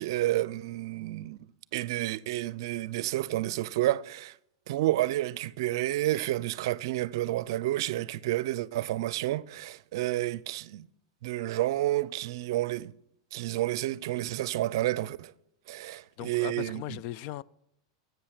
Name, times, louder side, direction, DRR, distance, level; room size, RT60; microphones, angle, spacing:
voice 1, 0.0-1.4 1.7-4.3 4.7-10.9 11.2-12.9 13.3-15.3 15.7-17.0, right 15 dB, 65° right, 0.5 m, -30 dB
voice 2, 15.8-17.4, left 14 dB, 50° left, 0.5 m, -39 dB
13.0 x 8.0 x 6.6 m
hypercardioid pair, 110°, 3 cm